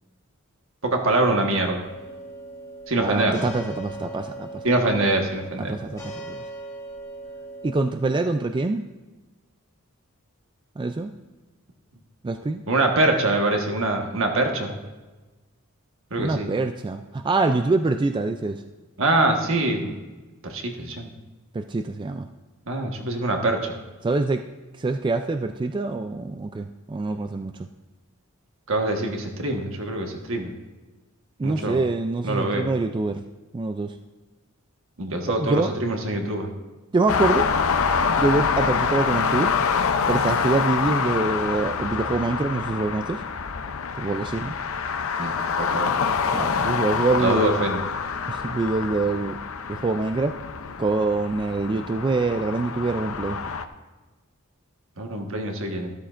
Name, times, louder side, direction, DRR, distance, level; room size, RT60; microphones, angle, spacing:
voice 1, 0.8-1.8 2.9-3.5 4.6-5.7 12.7-14.8 16.1-16.5 19.0-19.9 20.4-21.1 22.7-23.8 28.7-30.5 31.4-31.8 32.2-32.7 35.0-36.5 45.2-45.9 47.2-47.8 55.0-55.9, right 2 dB, 65° right, 3 dB, 1.4 m, -24 dB
sound 1, 1.8-7.9, right 2 dB, 15° left, 1.6 m, -39 dB
voice 2, 3.0-4.7 5.7-6.5 7.6-8.8 10.8-11.1 12.2-12.6 16.2-18.6 21.5-22.3 24.0-24.4 24.8-27.7 31.4-33.2 33.5-34.0 35.3-35.7 36.9-37.5 38.2-43.2 44.0-44.6 46.3-47.5 48.3-49.4 49.7-50.3 50.8-53.4, right 3 dB, 20° right, 7 dB, 0.3 m, -25 dB
sound 2, 37.1-53.6, left 5 dB, 70° left, 0.6 m, -26 dB
13.0 x 12.5 x 2.5 m, 1.2 s
head